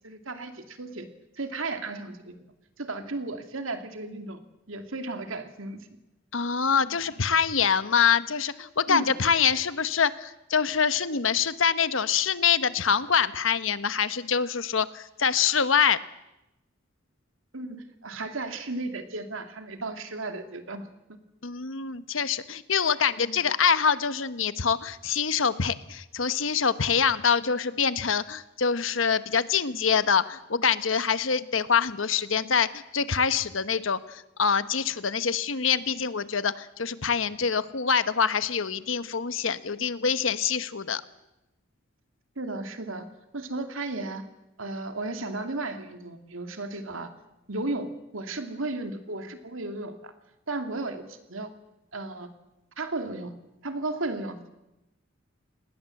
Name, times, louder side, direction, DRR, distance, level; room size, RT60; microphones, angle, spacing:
voice 1, 0.0-1.1 1.3-2.5 2.8-4.4 4.7-5.9 8.9-9.1 17.5-21.2 23.4-23.5 42.4-43.1 43.3-44.2 44.6-47.1 47.5-50.1 50.5-51.5 51.9-52.3 52.8-54.5, right 2 dB, 85° right, 7 dB, 2.6 m, -34 dB
voice 2, 6.3-16.0 21.4-41.0, left 6 dB, 75° left, 13 dB, 1.1 m, -25 dB
27.5 x 20.0 x 7.8 m, 0.94 s
head